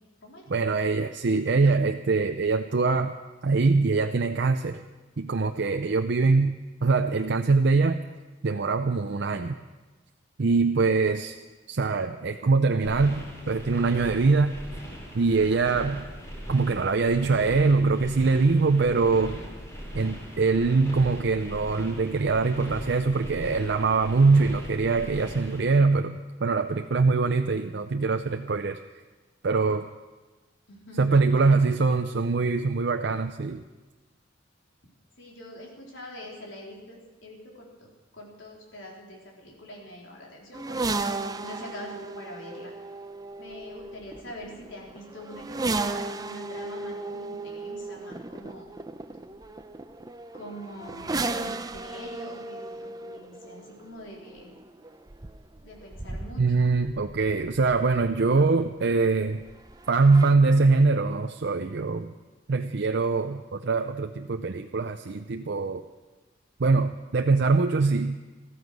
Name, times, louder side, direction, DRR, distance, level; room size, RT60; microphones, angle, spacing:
voice 1, 0.5-3.1 3.4-4.8 5.2-8.0 8.4-9.5 10.4-11.4 11.7-14.5 15.1-16.0 16.5-19.4 19.9-28.8 29.4-29.9 31.0-33.6 56.4-59.4 59.9-62.1 62.5-65.8 66.6-68.2, right 4 dB, 60° right, 6 dB, 0.6 m, -23 dB
sound 1, 12.8-25.6, equal, 15° left, 3.7 m, -40 dB
voice 2, 30.7-31.7 35.2-37.9 38.1-40.8 41.4-42.7 43.4-48.7 50.3-54.5 55.6-56.7, equal, 90° left, -2 dB, 3.9 m, -44 dB
sound 2, 40.5-58.3 59.4-60.3, right 3 dB, 20° right, 0.6 m, -35 dB
14.5 x 14.0 x 6.3 m, 1.2 s
head